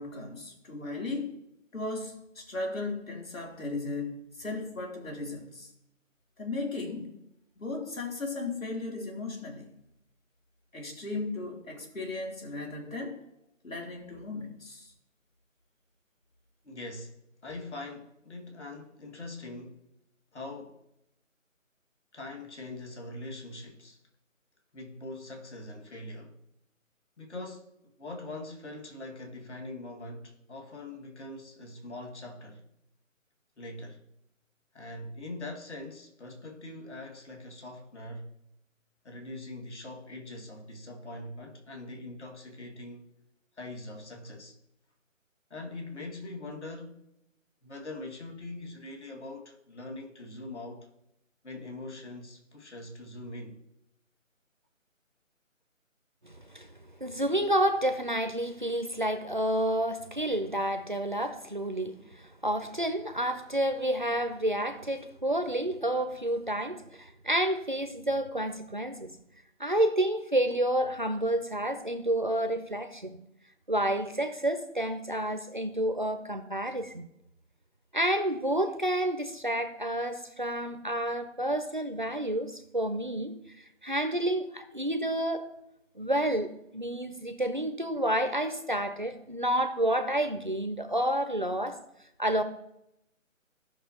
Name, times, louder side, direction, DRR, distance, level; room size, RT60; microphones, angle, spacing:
voice 1, 0.0-1.4 1.7-5.7 6.4-7.1 7.6-9.7 10.7-13.2 13.6-14.9, left 3 dB, 80° left, 3.2 m, -36 dB
voice 2, 16.6-19.8 20.3-20.8 22.1-24.0 24.7-26.4 27.2-27.7 28.0-32.7 33.6-34.0 34.7-38.4 39.0-43.1 43.6-44.5 45.5-47.1 47.6-50.9 51.4-53.6, left 2 dB, 55° left, 2.0 m, -42 dB
voice 3, 56.2-56.7 57.0-69.1 69.6-73.2 73.7-77.1 77.9-83.4 83.8-85.5 86.0-91.8 92.2-92.4, right 1 dB, 40° right, 0.6 m, -29 dB
16.0 x 6.0 x 2.9 m
figure-of-eight pair, 170°, 40 cm